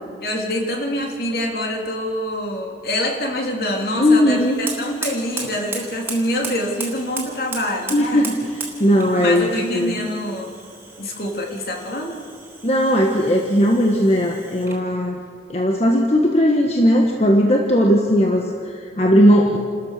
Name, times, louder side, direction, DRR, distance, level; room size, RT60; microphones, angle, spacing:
voice 1, 0.2-8.3 9.2-10.5 11.0-12.2, left 1 dB, 60° left, 0 dB, 3.5 m, -25 dB
voice 2, 3.9-4.6 7.9-8.3 8.8-10.0 12.6-15.2 15.5-19.6, equal, 35° left, 1 dB, 1.5 m, -17 dB
Fire, 4.3-14.9, right 3 dB, 15° right, 3.2 m, -36 dB
29.0 x 14.0 x 6.7 m, 2.2 s
head